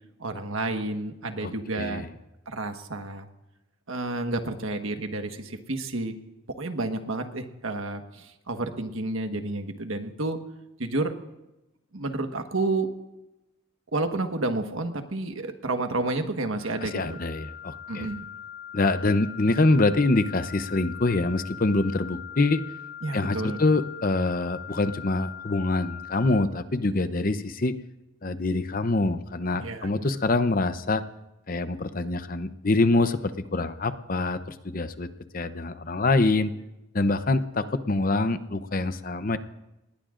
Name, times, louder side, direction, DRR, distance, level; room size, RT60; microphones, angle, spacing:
voice 1, 0.2-2.1 2.5-3.3 3.9-6.1 6.6-10.4 10.8-11.1 11.9-12.9 13.9-17.2 17.9-18.2 23.0-23.6 29.5-30.1, right 2 dB, 75° right, 5 dB, 1.4 m, -30 dB
voice 2, 1.4-2.1 16.8-18.1 18.7-22.6 23.1-27.7 28.2-31.0 31.5-36.5 36.9-39.4, left 2 dB, 40° left, 11 dB, 0.7 m, -25 dB
sound 1, 16.5-26.4, left 9 dB, 70° left, 1.7 m, -41 dB
26.5 x 20.0 x 2.6 m, 0.96 s
head